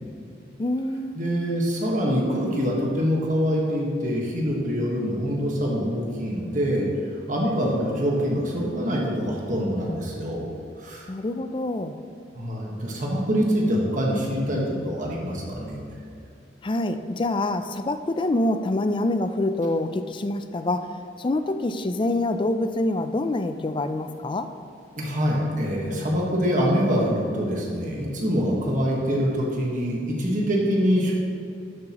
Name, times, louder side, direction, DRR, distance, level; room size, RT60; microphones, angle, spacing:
voice 1, 0.6-1.2 11.1-12.0 16.6-20.9 21.2-24.5, left 2 dB, 25° left, 9 dB, 0.4 m, -26 dB
voice 2, 1.1-6.9 7.3-10.5 10.8-11.1 12.3-15.8 24.9-31.1, equal, 45° right, -2 dB, 1.4 m, -25 dB
12.0 x 7.8 x 3.0 m, 2.5 s
head